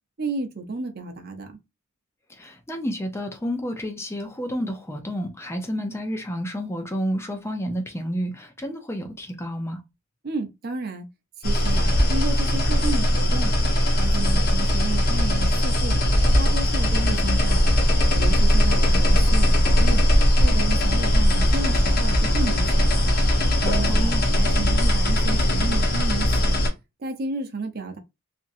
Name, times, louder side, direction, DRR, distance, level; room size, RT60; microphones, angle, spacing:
voice 1, 0.2-1.6 10.2-11.1 11.4-13.5 14.0-16.0 16.4-17.8 18.2-20.1 20.4-23.0 23.6-26.6 27.0-28.0, right 3 dB, 50° right, 0.7 m, -32 dB
voice 2, 2.3-9.8 23.9-24.2, equal, 15° left, 0.6 m, -30 dB
sound 1, 11.4-26.7, equal, 45° left, 0.9 m, -19 dB
2.9 x 2.6 x 2.5 m
head